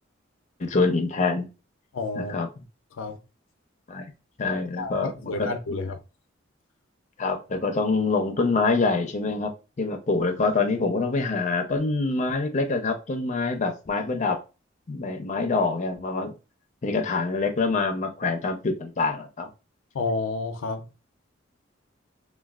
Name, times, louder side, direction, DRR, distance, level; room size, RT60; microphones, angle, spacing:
voice 1, 0.6-1.5 2.2-2.5 3.9-4.0 4.4-5.5 7.2-9.5 9.8-14.4 14.9-16.3 16.8-19.5, left 3 dB, 35° left, 0.5 m, -25 dB
voice 2, 1.9-2.3 2.9-3.2 4.8-6.0 19.9-20.8, left 3 dB, 90° left, 0.5 m, -30 dB
3.2 x 2.2 x 2.3 m
head